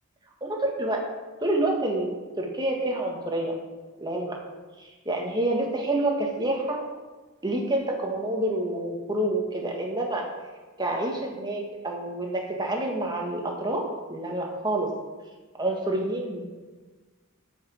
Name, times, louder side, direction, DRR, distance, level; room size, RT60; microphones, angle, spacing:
voice 1, 0.4-1.0 1.4-3.6 4.0-4.4 4.8-6.8 7.4-10.3 10.8-14.9 15.6-16.4, right 1 dB, 20° right, 0 dB, 1.6 m, -28 dB
8.3 x 5.8 x 7.7 m, 1.3 s
head